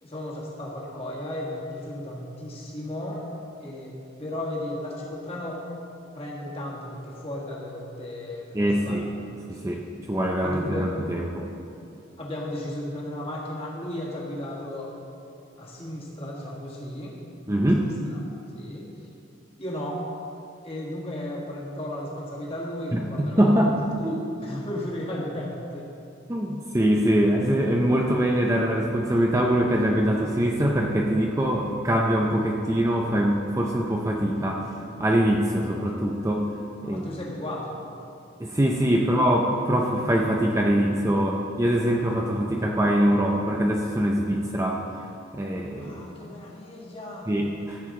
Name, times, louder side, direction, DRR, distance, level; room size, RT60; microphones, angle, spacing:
voice 1, 0.0-3.3 3.6-5.6 6.1-9.0 9.6-9.8 10.4-10.9 12.2-14.9 15.6-17.2 17.8-18.2 18.5-18.9 19.6-20.0 20.6-25.9 36.8-37.8 39.2-39.4 45.8-47.3, left 1 dB, 30° left, -4 dB, 1.6 m, -35 dB
voice 2, 8.5-9.1 9.5-11.5 17.5-17.9 22.9-23.7 24.0-24.2 26.3-34.7 35.0-36.5 36.8-37.0 38.4-44.8 45.3-46.1 47.3-47.8, right 1 dB, 15° right, 0 dB, 0.5 m, -23 dB
14.0 x 6.8 x 3.7 m, 2.7 s
head